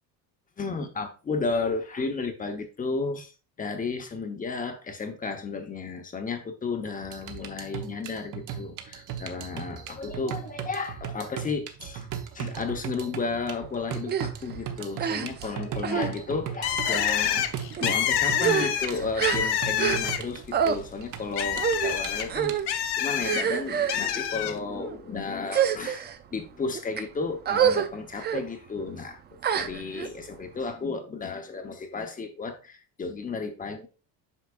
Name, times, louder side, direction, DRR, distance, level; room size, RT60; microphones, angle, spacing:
voice 1, 0.6-3.3 3.6-12.1 12.3-17.5 17.8-22.5 23.0-29.2 29.5-33.9, left 4 dB, 20° left, 0.9 m, -33 dB
sound 1, 7.0-22.6, right 9 dB, 45° right, 1.0 m, -38 dB
sound 2, 14.1-14.3 15.0-15.5 15.8-16.1 16.8-17.1 17.8-17.9 18.3-20.2 20.5-20.8 21.6-21.9 22.3-22.7 23.2-24.0 24.7-25.0 25.5-26.2 26.7-27.0 27.5-27.9 28.2-28.4 29.4-30.1, right 8 dB, 25° right, 0.4 m, -27 dB
Bird, 16.6-20.5 20.8-23.4 23.9-24.5, left 10 dB, 65° left, 0.9 m, -27 dB
8.4 x 5.7 x 2.4 m
cardioid pair, 155°, 43 cm